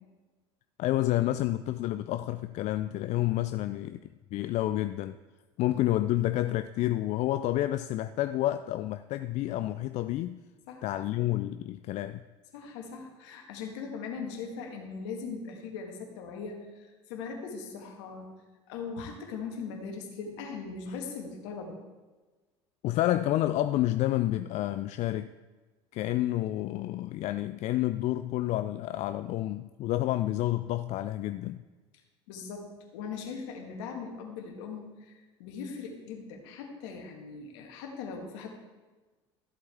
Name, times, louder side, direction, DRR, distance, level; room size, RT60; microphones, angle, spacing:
voice 1, 0.8-4.0 4.3-5.2 5.6-10.4 10.8-12.2 22.8-25.3 25.9-31.6, left 14 dB, 55° left, 10 dB, 0.4 m, -29 dB
voice 2, 12.5-18.3 18.7-21.8 32.3-38.5, left 5 dB, 75° left, 2 dB, 1.9 m, -40 dB
14.0 x 7.9 x 3.5 m, 1.3 s
hypercardioid pair, 70°, 15 cm